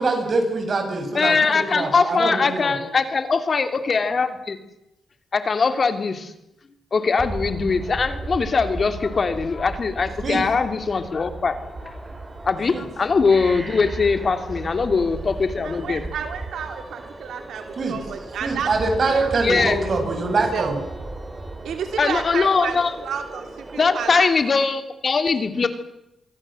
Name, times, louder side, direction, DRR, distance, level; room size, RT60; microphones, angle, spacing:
voice 1, 0.0-2.8 10.2-10.4 12.7-12.8 17.8-18.0 18.4-20.8, right 3 dB, 55° right, 5 dB, 7.9 m, -24 dB
voice 2, 1.1-4.6 5.3-6.3 6.9-12.0 12.4-16.0 19.4-19.8 22.0-22.9 23.8-25.7, left 4 dB, 45° left, 9 dB, 2.9 m, -21 dB
sound 1, 7.2-24.2, right 2 dB, 25° right, 5.7 m, -35 dB
voice 3, 15.6-18.7 19.0-19.7 20.5-20.7 21.6-24.3, right 7 dB, 80° right, 7 dB, 3.1 m, -31 dB
27.5 x 23.0 x 7.8 m, 0.85 s
cardioid pair, 75°, 0 cm